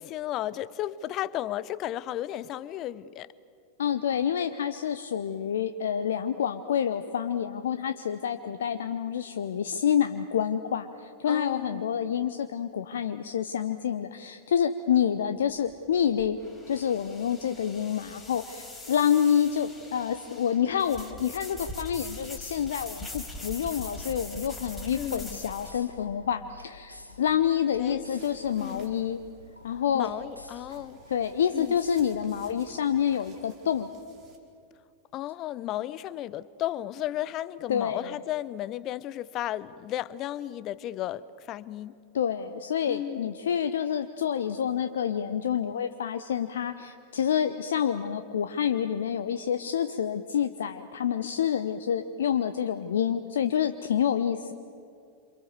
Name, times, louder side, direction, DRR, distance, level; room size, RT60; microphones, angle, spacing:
voice 1, 0.0-3.3 11.3-11.8 24.9-25.4 27.8-28.0 28.6-28.9 29.9-31.0 31.5-31.8 35.1-42.0 42.9-43.3, left 13 dB, 35° left, 0.8 m, -34 dB
voice 2, 3.8-29.2 29.6-30.1 31.1-33.9 37.7-38.1 42.1-54.5, left 8 dB, 65° left, 0.9 m, -28 dB
sound 1, 15.4-25.8, left 2 dB, 5° left, 4.8 m, -42 dB
sound 2, 24.9-33.0, left 2 dB, 90° left, 2.3 m, -51 dB
sound 3, 28.0-34.4, right 5 dB, 30° right, 4.2 m, -57 dB
28.0 x 27.5 x 7.1 m
figure-of-eight pair, 90°, 0 cm